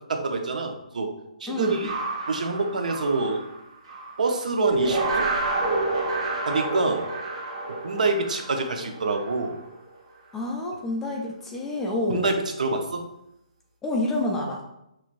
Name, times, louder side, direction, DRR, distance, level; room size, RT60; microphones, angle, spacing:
voice 1, 0.1-1.1 1.4-1.9 2.3-3.4 4.2-5.3 6.4-7.1 7.8-9.5 12.1-13.0, right 3 dB, 75° right, 4 dB, 0.8 m, -26 dB
voice 2, 1.5-1.9 10.3-12.4 13.8-14.6, left 2 dB, 5° left, 0 dB, 0.3 m, -28 dB
sound 1, 1.6-4.3 4.7-9.8, right 2 dB, 45° right, 1.3 m, -29 dB
5.8 x 3.1 x 2.5 m, 0.84 s
hypercardioid pair, 170°, 4 cm